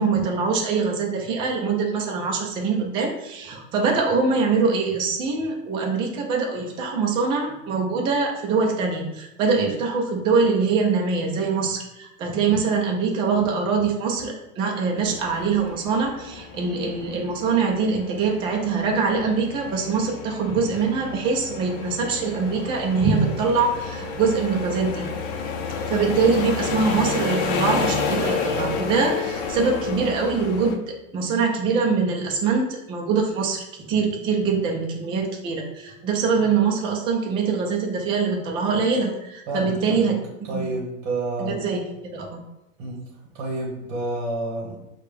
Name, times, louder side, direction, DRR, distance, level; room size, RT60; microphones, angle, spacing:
voice 1, 0.0-25.1 25.9-40.7 41.4-42.4, right 4 dB, 15° right, 1 dB, 0.3 m, -23 dB
sound 1, 15.0-30.8, left 4 dB, 50° left, 0.6 m, -30 dB
voice 2, 39.5-40.2 40.5-41.7 42.8-44.8, right 2 dB, 50° right, -3 dB, 1.2 m, -30 dB
4.8 x 2.2 x 3.2 m, 0.95 s
supercardioid pair, 135°, 39 cm